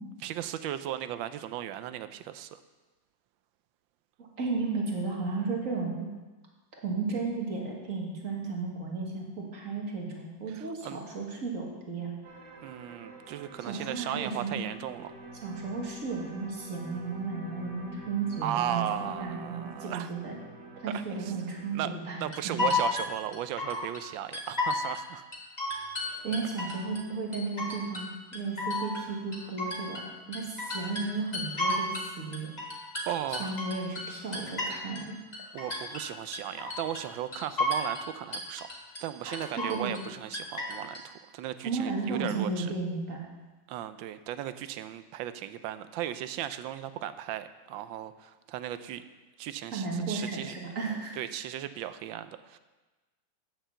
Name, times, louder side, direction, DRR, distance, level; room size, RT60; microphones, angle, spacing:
voice 1, 0.2-2.6 10.5-11.0 12.6-15.1 18.4-20.1 20.9-21.4 21.7-21.9 22.2-25.2 33.1-33.6 35.5-38.7 39.0-42.7 43.7-49.0 49.4-50.5 51.2-52.6, right 11 dB, 80° right, 12 dB, 1.3 m, -36 dB
voice 2, 4.2-6.1 6.8-12.1 13.7-14.6 15.4-20.3 20.8-22.7 26.2-30.0 30.3-32.5 33.4-35.2 39.2-39.9 41.6-43.3 49.7-51.2, right 4 dB, 45° right, -1 dB, 2.0 m, -34 dB
sound 1, 12.2-21.7, right 2 dB, 60° right, 2.2 m, -47 dB
sound 2, 22.3-24.0 24.3-25.0 25.3-27.0 27.3-28.1 28.3-30.1 30.3-32.1 32.3-35.1 35.3-36.1 36.3-37.1 37.3-38.1 38.3-39.0 39.3-40.1 40.3-41.0, left 2 dB, 25° left, 1.4 m, -32 dB
9.0 x 6.7 x 6.9 m, 1.2 s
omnidirectional pair, 2.2 m